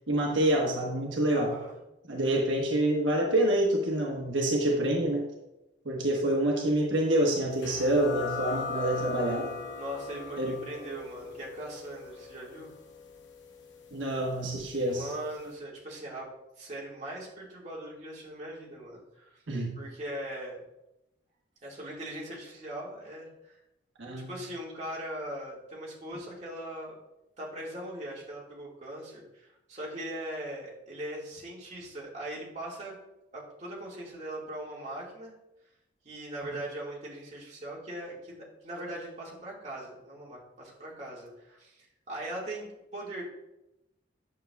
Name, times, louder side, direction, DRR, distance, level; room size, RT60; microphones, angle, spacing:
voice 1, 0.1-1.5 2.1-5.3 5.8-9.5 10.4-10.6 13.9-15.1 19.5-19.8 24.0-24.3, right 1 dB, 80° right, -1 dB, 1.2 m, -27 dB
voice 2, 1.3-1.7 9.8-12.7 14.9-16.3 16.6-19.4 19.8-20.6 21.6-23.6 24.3-26.9 27.4-32.9 33.3-35.3 36.1-43.2, right 1 dB, 35° right, -5 dB, 1.8 m, -40 dB
sound 1, 7.6-14.9, left 5 dB, 70° left, 0.7 m, -40 dB
9.2 x 6.6 x 2.3 m, 0.92 s
head